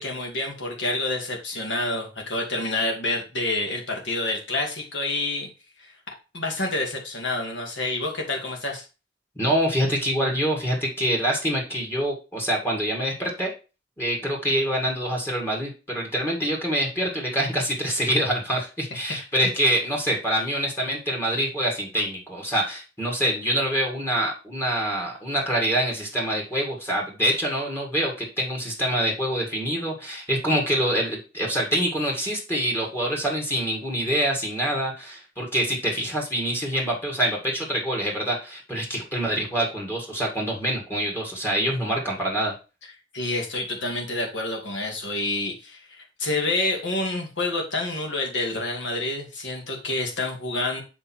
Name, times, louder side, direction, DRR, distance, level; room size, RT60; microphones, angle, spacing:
voice 1, 0.0-5.5 5.8-5.9 6.3-8.8 19.4-19.5 43.1-50.8, left 2 dB, 75° left, 1 dB, 2.3 m, -28 dB
voice 2, 9.4-13.5 14.0-42.5, right 1 dB, 15° left, -1 dB, 2.1 m, -25 dB
6.7 x 5.1 x 4.5 m, 0.31 s
head